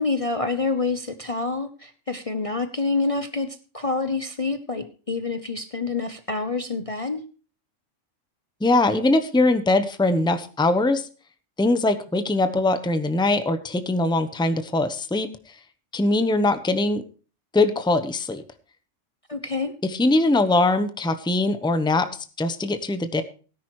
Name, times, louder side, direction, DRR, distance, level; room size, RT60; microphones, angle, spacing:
voice 1, 0.0-7.2 19.3-19.7, left 3 dB, 30° left, 9 dB, 0.9 m, -27 dB
voice 2, 8.6-11.1 11.6-15.3 15.9-17.0 17.5-18.4 19.8-22.1 22.4-23.2, left 2 dB, 5° left, 10 dB, 0.9 m, -21 dB
17.5 x 10.0 x 3.1 m, 0.37 s
omnidirectional pair, 1.3 m